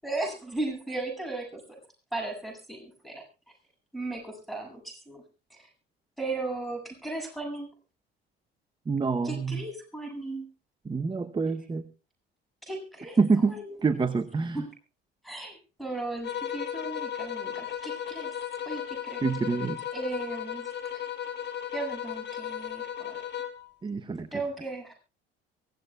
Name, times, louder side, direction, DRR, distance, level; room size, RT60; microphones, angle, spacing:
voice 1, 0.0-1.8 2.1-3.2 3.9-5.2 5.5-5.7 6.2-7.7 9.2-10.5 12.6-13.8 14.5-14.7 15.2-18.3 18.6-19.2 19.9-20.7 20.9-21.1 21.7-23.2 24.3-24.9, right 2 dB, ahead, 3 dB, 7.6 m, -36 dB
voice 2, 8.9-9.6 10.8-11.8 13.2-14.6 19.2-19.8 23.8-24.3, right 4 dB, 15° right, 11 dB, 1.0 m, -27 dB
sound 1, 16.2-23.7, left 9 dB, 35° left, 1.4 m, -35 dB
23.5 x 17.5 x 2.4 m, 0.33 s
figure-of-eight pair, 60°, 31 cm